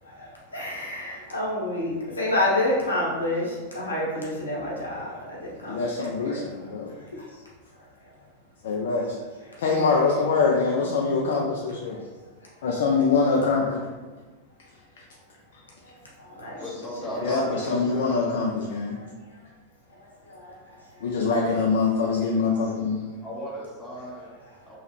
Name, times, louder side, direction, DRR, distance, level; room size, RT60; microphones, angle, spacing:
voice 1, 0.0-6.4 6.9-7.4 7.7-8.2 9.4-9.9 10.8-11.3 11.9-12.1 12.4-12.6 15.8-17.7 19.0-19.4 19.9-21.1 24.4-24.8, left 1 dB, 75° left, -5 dB, 0.9 m, -31 dB
voice 2, 5.7-6.9 8.6-9.2 9.6-12.0 12.6-13.8 17.2-19.0 21.0-23.1, left 4 dB, 60° left, -2 dB, 0.4 m, -24 dB
voice 3, 16.6-18.1 21.2-21.7 22.5-22.6 23.2-24.3 24.7-24.8, left 1 dB, 10° left, -5 dB, 0.9 m, -36 dB
3.0 x 2.3 x 3.2 m, 1.3 s
figure-of-eight pair, 90°, 0 cm